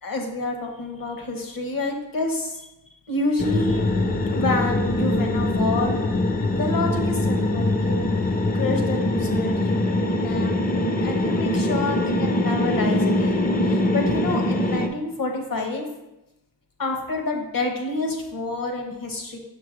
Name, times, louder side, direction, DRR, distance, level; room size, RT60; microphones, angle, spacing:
voice 1, 0.0-2.7 3.1-3.9 4.3-6.0 6.5-8.1 8.5-10.6 11.0-15.9 16.8-19.4, left 2 dB, 60° left, 2 dB, 1.1 m, -28 dB
sound 1, 3.4-14.9, left 1 dB, 25° left, 0.5 m, -23 dB
5.9 x 5.6 x 3.2 m, 0.92 s
wide cardioid pair, 80°, 38 cm